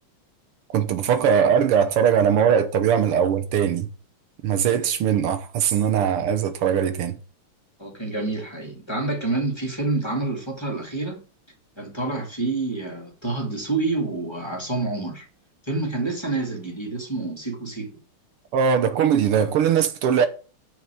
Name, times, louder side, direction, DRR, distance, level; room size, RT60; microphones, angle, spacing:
voice 1, 0.7-3.9 4.4-7.2 18.5-20.3, right 8 dB, 80° right, 1.9 m, -20 dB
voice 2, 7.8-11.2 11.8-15.3 15.7-17.9, right 3 dB, 10° left, 2.2 m, -28 dB
6.8 x 6.1 x 7.0 m
omnidirectional pair, 2.4 m